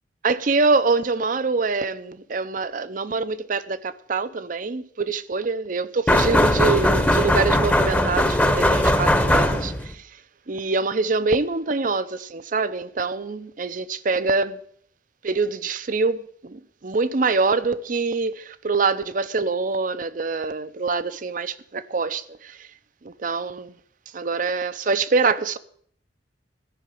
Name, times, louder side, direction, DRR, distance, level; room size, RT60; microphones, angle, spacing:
voice 1, 0.2-10.1 10.5-14.6 15.2-22.7 23.0-23.7 24.1-25.6, right 4 dB, 50° right, 0.6 m, -25 dB
sound 1, 6.1-9.9, left 1 dB, 10° left, 0.9 m, -19 dB
13.0 x 5.8 x 9.1 m
head